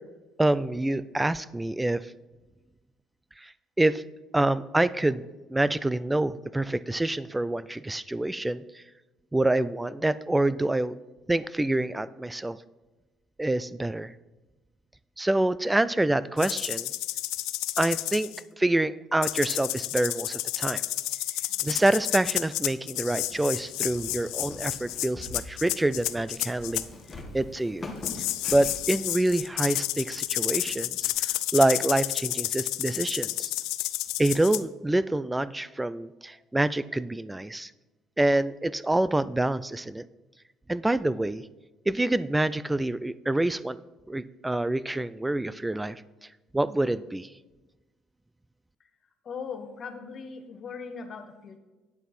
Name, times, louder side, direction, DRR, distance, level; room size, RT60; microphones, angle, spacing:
voice 1, 0.4-2.1 3.4-3.5 3.8-4.0 4.3-5.2 5.5-8.8 9.3-11.0 11.3-12.6 13.4-14.1 15.2-16.9 17.8-18.3 18.6-20.8 21.6-26.9 27.3-27.9 28.5-33.5 34.2-37.7 38.2-40.1 40.7-41.4 41.9-43.8 44.1-46.0 46.5-47.3, right 1 dB, 10° right, 17 dB, 0.3 m, -26 dB
sound 1, 16.4-18.4 19.2-26.8 28.0-34.6, left 16 dB, 90° left, 0.4 m, -31 dB
Walk footsteps, 22.9-31.1, left 2 dB, 20° left, 1.4 m, -45 dB
voice 2, 49.2-51.6, left 5 dB, 35° left, 6 dB, 1.2 m, -39 dB
9.3 x 8.1 x 4.2 m, 1.1 s
cardioid pair, 140°, 0 cm